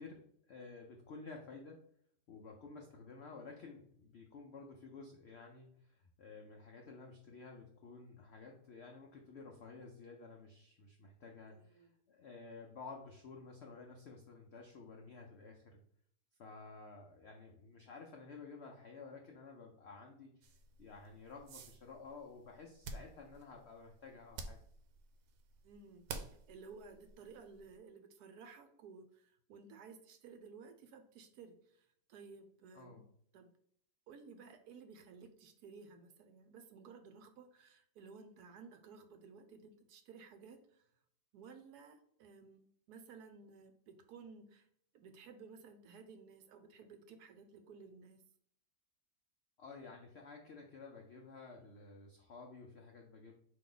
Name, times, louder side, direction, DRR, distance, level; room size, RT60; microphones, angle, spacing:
voice 1, 0.0-1.8 2.3-15.8 16.4-20.5 20.8-24.6 32.7-33.0 49.6-53.4, left 4 dB, 80° left, 1 dB, 0.5 m, -53 dB
voice 2, 11.5-11.9 25.6-26.0 26.5-33.0 33.3-33.5 34.1-40.8 41.3-42.6 42.9-44.7 44.9-48.2, right 5 dB, 75° right, 7 dB, 1.1 m, -56 dB
sound 1, 20.4-27.8, right 4 dB, 90° right, 1.3 m, -52 dB
4.6 x 2.9 x 3.8 m, 0.67 s
omnidirectional pair, 1.8 m